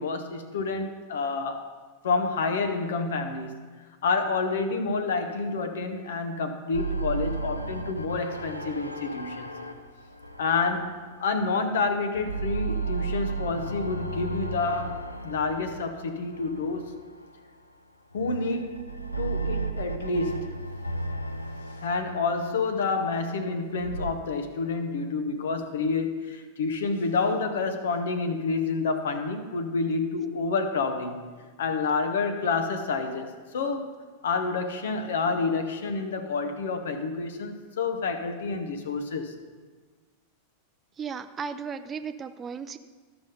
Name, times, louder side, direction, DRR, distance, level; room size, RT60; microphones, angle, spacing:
voice 1, 0.0-1.7 2.0-3.6 4.0-9.7 10.4-17.0 18.1-20.6 21.8-31.3 31.6-33.9 34.2-39.3, left 4 dB, 60° left, 8 dB, 1.0 m, -28 dB
sound 1, 6.7-11.7 12.0-17.4 18.1-24.1, right 3 dB, 85° left, 0.5 m, -35 dB
voice 2, 41.0-42.8, right 6 dB, 25° right, 11 dB, 0.4 m, -35 dB
13.5 x 6.0 x 5.2 m, 1.4 s
figure-of-eight pair, 90°, 0 cm